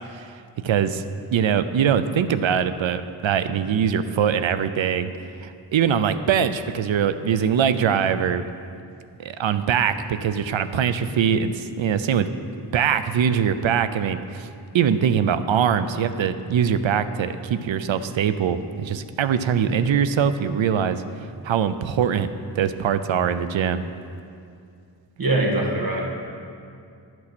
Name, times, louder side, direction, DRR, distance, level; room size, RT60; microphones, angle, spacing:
voice 1, 0.6-1.0 1.3-5.1 5.4-8.4 9.2-12.3 12.7-14.5 14.7-21.0 21.4-22.3 22.6-23.8, right 8 dB, 80° right, 12 dB, 0.6 m, -22 dB
voice 2, 25.2-26.1, right 2 dB, 50° right, -1 dB, 1.8 m, -22 dB
11.0 x 6.1 x 6.0 m, 2.4 s
wide cardioid pair, 80°, 46 cm